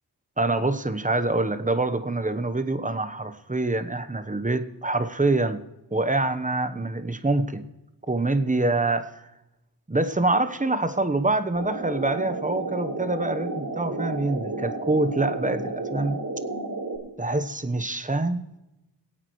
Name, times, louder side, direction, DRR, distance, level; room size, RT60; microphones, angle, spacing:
voice 1, 0.4-5.6 5.9-7.6 8.1-9.2 9.9-16.2 17.2-18.4, right 2 dB, 20° right, 10 dB, 1.0 m, -25 dB
sound 1, 11.5-17.0, right 2 dB, 60° right, 4.5 m, -32 dB
21.5 x 8.7 x 3.2 m, 0.92 s
wide cardioid pair, 45°, 42 cm